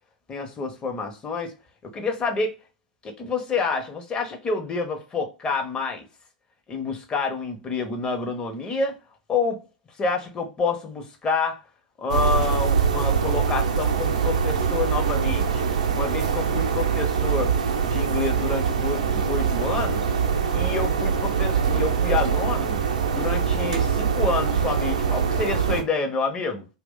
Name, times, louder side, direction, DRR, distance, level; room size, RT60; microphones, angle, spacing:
voice 1, 0.3-1.5 1.9-2.5 3.0-6.1 6.7-9.0 9.3-9.6 10.0-11.6 12.0-15.6 15.9-17.6 17.9-20.1 20.5-22.8 23.1-26.7, left 4 dB, 20° left, 0.8 m, -28 dB
sound 1, 12.1-25.8, right 6 dB, 65° right, 0.5 m, -23 dB
2.4 x 2.2 x 3.7 m
figure-of-eight pair, 95°, 4 cm